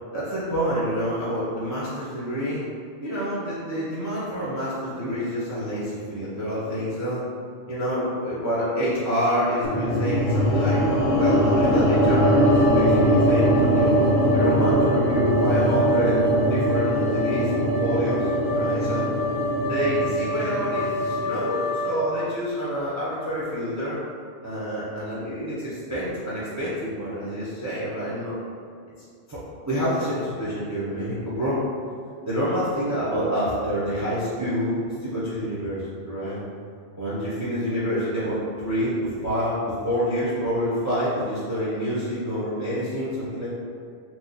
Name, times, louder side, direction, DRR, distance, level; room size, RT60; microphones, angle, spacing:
voice 1, 0.1-2.6 3.0-7.2 7.7-10.8 11.2-13.9 14.3-16.2 16.4-17.5 17.8-18.2 18.5-19.0 19.6-24.0 24.4-28.3 29.3-29.4 29.7-31.6 32.3-36.4 37.0-43.5, equal, 20° right, -10 dB, 0.5 m, -27 dB
sound 1, 9.6-21.9, equal, 75° left, 0.9 m, -22 dB
sound 2, 12.2-22.0, equal, 45° left, 0.5 m, -27 dB
3.0 x 2.0 x 4.0 m, 2.1 s
omnidirectional pair, 1.2 m